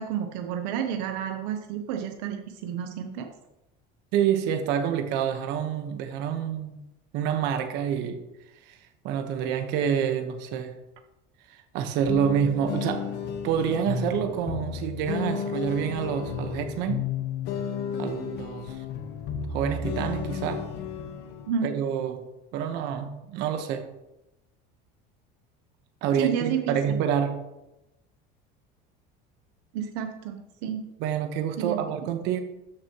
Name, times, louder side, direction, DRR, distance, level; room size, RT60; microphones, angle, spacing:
voice 1, 0.0-3.3 21.5-21.7 26.2-27.0 29.7-30.9 31.6-31.8, right 8 dB, 80° right, 5 dB, 0.8 m, -30 dB
voice 2, 4.1-6.8 7.1-8.2 8.6-8.8 9.0-10.8 11.5-13.1 13.4-17.1 18.0-18.8 19.5-20.7 21.6-22.3 22.5-23.9 26.0-27.4 31.0-32.4, right 8 dB, 55° right, 7 dB, 1.2 m, -27 dB
sound 1, 12.0-21.5, left 7 dB, 55° left, 1.2 m, -33 dB
13.0 x 6.8 x 3.0 m, 0.93 s
cardioid pair, 175°, 21 cm